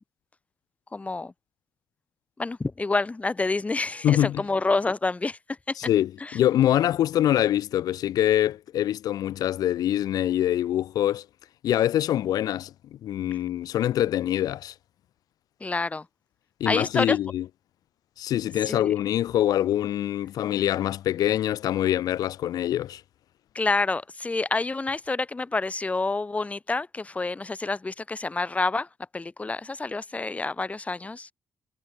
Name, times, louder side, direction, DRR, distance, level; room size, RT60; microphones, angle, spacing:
voice 1, 0.9-1.3 2.4-5.4 5.7-5.8 6.2-6.4 15.6-16.1 16.7-17.2 18.7-18.9 23.5-28.9 29.1-31.3, left 3 dB, 20° left, 0.7 m, -28 dB
voice 2, 4.0-4.4 5.8-11.2 11.6-12.7 13.0-14.7 16.6-17.4 18.2-23.0, left 12 dB, 85° left, 0.5 m, -24 dB
cardioid pair, 85°, 6 cm